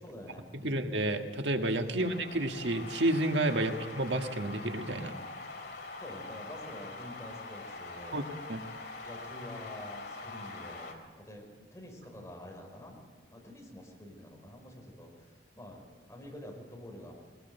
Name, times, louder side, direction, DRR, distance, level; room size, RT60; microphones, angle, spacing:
voice 1, 0.0-0.8 1.9-2.2 3.6-3.8 5.1-5.4 6.0-8.3 9.0-13.0 13.3-15.8 16.1-17.1, left 1 dB, 15° left, 0 dB, 5.1 m, -48 dB
voice 2, 0.6-5.1 8.1-8.2 8.5-8.6, right 1 dB, 85° right, 5 dB, 1.6 m, -30 dB
sound 1, 2.0-10.9, left 3 dB, 70° left, 3.2 m, -44 dB
20.5 x 19.5 x 8.1 m, 1.5 s
head